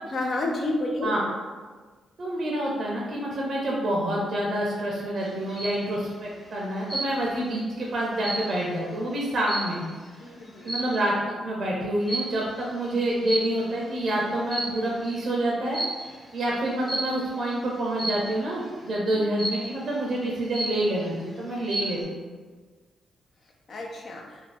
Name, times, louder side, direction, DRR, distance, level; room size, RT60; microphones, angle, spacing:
voice 1, 0.1-1.1 10.2-10.7 23.7-24.2, left 2 dB, 55° left, 0 dB, 0.5 m, -29 dB
voice 2, 2.2-9.8 10.6-11.2 11.4-22.2, right 1 dB, 60° right, -3 dB, 0.5 m, -27 dB
sound 1, 5.2-5.8 6.9-7.4 7.8-10.1 10.6-11.1 12.1-12.5 13.3-13.9 14.3-15.0 15.7-16.1 16.9-17.3 18.0-18.4 19.4-19.9 20.3-20.4 20.5-21.1 21.5-22.0, right 2 dB, 25° left, 1.1 m, -32 dB
2.5 x 2.1 x 3.2 m, 1.4 s
supercardioid pair, 55°, 0 cm